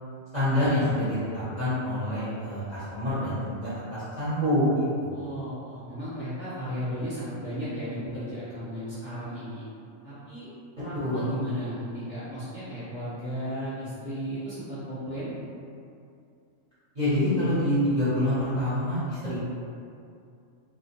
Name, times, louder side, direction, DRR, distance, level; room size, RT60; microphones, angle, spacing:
voice 1, 0.3-5.3 11.0-11.3 16.9-19.4, left 1 dB, 35° right, -15 dB, 0.9 m, -26 dB
voice 2, 5.1-9.6 10.0-10.5 10.7-15.4, equal, 10° left, -14 dB, 0.8 m, -35 dB
2.2 x 2.1 x 2.9 m, 2.5 s
omnidirectional pair, 1.4 m